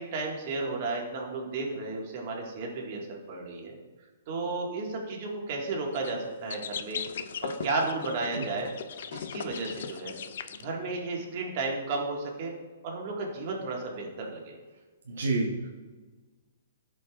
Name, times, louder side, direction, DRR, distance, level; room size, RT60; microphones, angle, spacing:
voice 1, 0.0-3.8 4.3-7.0 7.4-8.7 9.1-10.1 10.5-12.5 12.8-14.5, right 3 dB, 45° right, -1 dB, 1.7 m, -33 dB
sound 1, 5.9-6.1 6.5-10.6, left 7 dB, 65° left, 0.4 m, -38 dB
voice 2, 15.1-15.7, right 3 dB, 80° right, 0 dB, 1.0 m, -29 dB
13.0 x 5.2 x 2.4 m, 1.3 s
hypercardioid pair, 150°, 0 cm